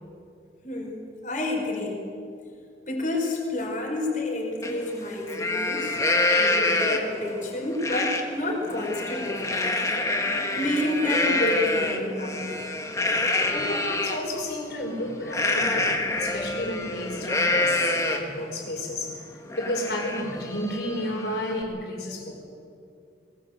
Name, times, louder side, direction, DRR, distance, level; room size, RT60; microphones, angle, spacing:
voice 1, 0.6-2.0 2.9-6.0 6.3-9.6 10.6-12.6, left 1 dB, 45° left, -1 dB, 5.2 m, -29 dB
Livestock farm animals working animals, 4.6-4.7 5.1-7.2 7.8-8.2 8.6-14.2 15.3-18.4 18.8-18.9 19.3-21.6, left 2 dB, 20° left, 1.8 m, -26 dB
voice 2, 13.5-19.2 19.6-22.4, left 1 dB, 65° left, 1 dB, 5.3 m, -32 dB
22.0 x 20.5 x 8.0 m, 2.4 s
head